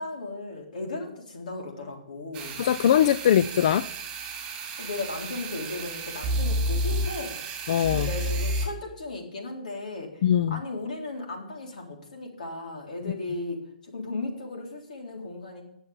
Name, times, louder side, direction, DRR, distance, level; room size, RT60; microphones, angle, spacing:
voice 1, 0.0-2.7 4.8-7.4 7.9-10.2 10.5-15.6, left 2 dB, 75° left, 0 dB, 3.7 m, -36 dB
sound 1, 2.3-8.7, right 1 dB, 25° right, 2.5 m, -31 dB
voice 2, 2.6-3.9 7.7-8.1 10.2-10.6, left 10 dB, 55° left, 15 dB, 0.4 m, -21 dB
9.9 x 7.0 x 7.2 m, 0.73 s
hypercardioid pair, 145°, 4 cm